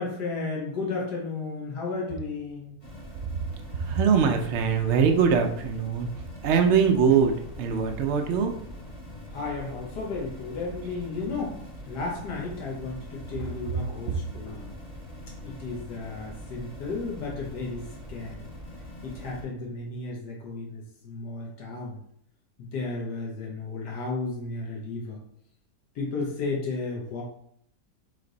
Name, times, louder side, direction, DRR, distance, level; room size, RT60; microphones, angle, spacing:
voice 1, 0.0-2.7 9.3-11.6 11.9-14.7 15.4-18.4 19.0-22.0 22.6-25.2 25.9-27.2, left 3 dB, 80° left, -2 dB, 1.5 m, -33 dB
sound 1, 2.8-19.4, equal, 35° left, 1.6 m, -42 dB
voice 2, 3.7-6.1 6.4-8.5, right 6 dB, 75° right, 3 dB, 0.6 m, -22 dB
4.2 x 3.2 x 3.9 m, 0.68 s
omnidirectional pair, 1.7 m